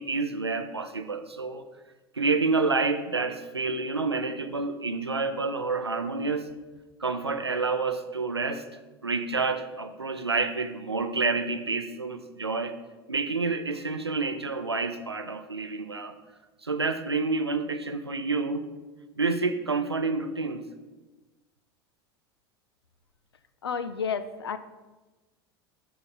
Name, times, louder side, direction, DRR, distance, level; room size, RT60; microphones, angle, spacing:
voice 1, 0.0-1.6 2.1-6.5 7.0-8.6 9.0-12.8 13.1-16.1 16.6-18.7 19.2-20.6, right 3 dB, 90° right, 9 dB, 0.5 m, -28 dB
voice 2, 23.6-24.6, left 6 dB, 75° left, 13 dB, 0.4 m, -31 dB
11.0 x 4.3 x 3.9 m, 1.2 s
figure-of-eight pair, 80°, 13 cm